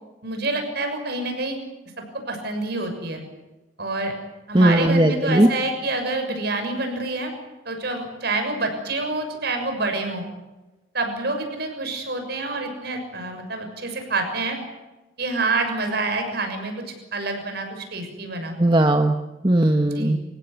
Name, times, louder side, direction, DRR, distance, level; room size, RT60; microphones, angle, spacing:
voice 1, 0.2-1.6 2.3-3.2 3.8-4.1 4.5-7.3 7.6-10.2 10.9-14.6 15.2-18.5 19.9-20.2, right 2 dB, 50° right, 5 dB, 6.7 m, -27 dB
voice 2, 4.5-5.5 18.6-19.2 19.4-20.2, right 1 dB, 20° right, 5 dB, 1.2 m, -17 dB
28.5 x 16.5 x 9.5 m, 1.1 s
head